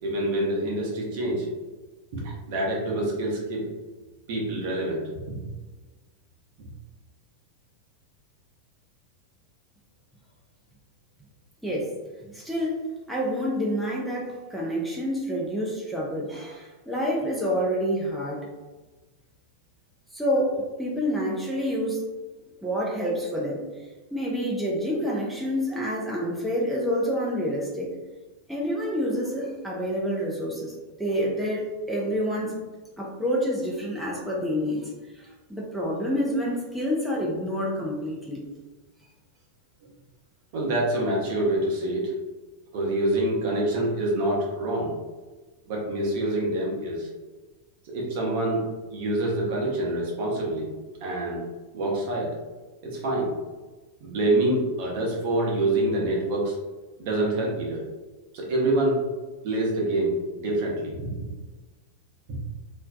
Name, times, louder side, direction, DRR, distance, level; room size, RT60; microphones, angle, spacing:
voice 1, 0.0-1.5 2.1-3.7 4.3-5.4 40.5-42.1 42.7-44.9 45.7-47.1 47.9-50.7 51.0-51.4 51.7-52.3 52.8-53.3 54.0-56.6 57.0-57.8 58.3-59.0 59.4-61.1 62.3-62.4, right 1 dB, 50° right, -3 dB, 0.7 m, -26 dB
voice 2, 12.3-12.8 13.1-18.5 20.1-22.0 22.6-23.6 24.1-27.9 28.5-30.7 31.0-32.6 33.0-34.9 35.2-38.4, equal, ahead, -5 dB, 0.5 m, -28 dB
2.5 x 2.2 x 2.3 m, 1.2 s
figure-of-eight pair, 90°, 0 cm